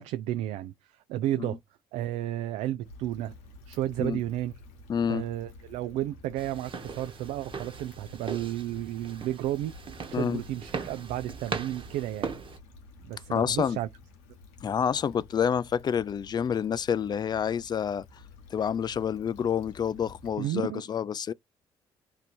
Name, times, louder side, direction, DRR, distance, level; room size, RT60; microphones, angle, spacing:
voice 1, 0.0-1.6 1.9-3.3 3.7-4.5 5.1-9.7 10.1-12.3 13.0-13.9 20.4-20.8, right 13 dB, 75° right, 0.4 m, -32 dB
Stream / Traffic noise roadway noise / Trickle dribble, 2.8-20.4, left 3 dB, 85° left, 0.9 m, -51 dB
voice 2, 4.9-5.3 10.1-10.4 13.3-13.8 14.6-18.0 18.5-21.3, left 7 dB, 35° left, 0.3 m, -28 dB
sound 1, 6.4-12.6, right 5 dB, 45° right, 1.2 m, -39 dB
3.2 x 2.6 x 4.2 m
hypercardioid pair, 55°, 12 cm